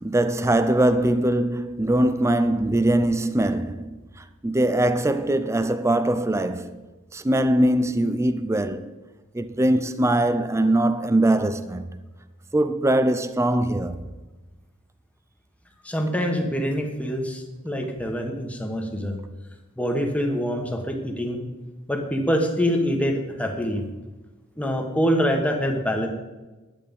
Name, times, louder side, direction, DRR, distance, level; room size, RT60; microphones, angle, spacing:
voice 1, 0.0-6.8 7.1-8.9 9.3-11.9 12.5-14.0, right 1 dB, 15° right, 0.5 m, -22 dB
voice 2, 15.8-19.2 19.8-21.4 21.9-23.8 24.6-26.1, equal, 5° left, 1.4 m, -25 dB
11.0 x 8.8 x 5.3 m
head